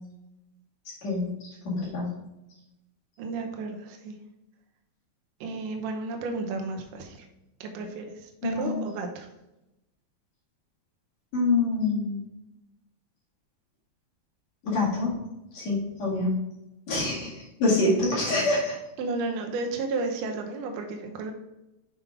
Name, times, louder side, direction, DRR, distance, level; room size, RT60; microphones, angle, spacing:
voice 1, 1.0-2.1 8.4-8.7 11.3-12.2 14.6-15.1 15.5-16.4 16.9-18.8, left 2 dB, 50° left, -5 dB, 3.0 m, -26 dB
voice 2, 3.2-4.2 5.4-7.3 7.6-9.3 19.0-21.3, right 3 dB, 75° right, 3 dB, 2.0 m, -33 dB
7.0 x 5.6 x 3.5 m, 0.93 s
omnidirectional pair, 4.5 m